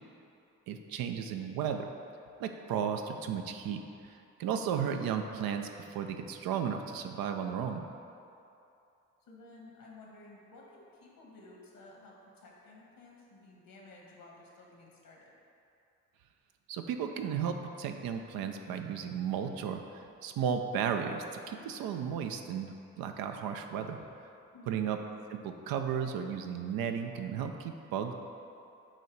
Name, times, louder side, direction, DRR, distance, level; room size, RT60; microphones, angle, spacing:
voice 1, 0.7-1.9 2.4-7.9 16.7-24.0 24.7-25.0 25.3-28.1, right 7 dB, 80° right, 6 dB, 0.5 m, -34 dB
voice 2, 9.3-15.3 24.5-24.8, left 2 dB, 70° left, -2 dB, 1.3 m, -54 dB
7.3 x 2.8 x 4.6 m, 2.7 s
hypercardioid pair, 40°, 35 cm